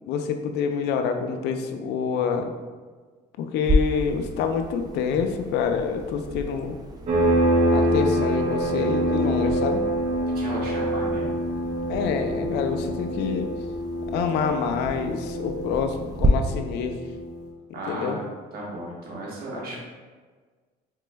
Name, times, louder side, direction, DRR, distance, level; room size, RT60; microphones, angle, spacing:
voice 1, 0.1-2.5 3.4-6.8 7.7-9.8 11.9-13.5 14.1-17.0 17.9-18.2, left 6 dB, 80° left, 6 dB, 0.4 m, -27 dB
sound 1, 3.6-16.3, right 1 dB, 25° right, 0.3 m, -33 dB
sound 2, 7.1-17.4, right 1 dB, 40° right, 0.8 m, -25 dB
voice 2, 10.3-11.3 17.7-18.3 18.5-19.8, right 1 dB, 65° right, -4 dB, 1.2 m, -34 dB
4.2 x 3.1 x 2.2 m, 1.4 s
cardioid pair, 110°, 17 cm